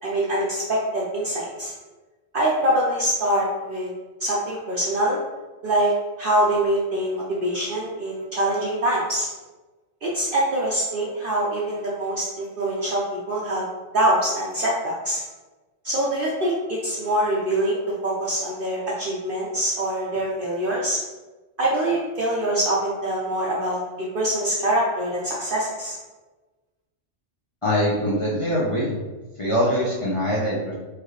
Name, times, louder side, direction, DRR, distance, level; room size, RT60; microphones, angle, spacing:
voice 1, 0.0-1.7 2.3-3.9 4.2-5.2 5.6-5.9 6.2-9.3 10.0-13.6 13.9-15.2 15.8-21.0 21.6-26.0, right 1 dB, 55° right, -5 dB, 0.8 m, -24 dB
voice 2, 27.6-29.0 29.4-30.7, equal, 30° left, -7 dB, 0.7 m, -23 dB
4.8 x 3.1 x 3.1 m, 1.2 s
omnidirectional pair, 1.2 m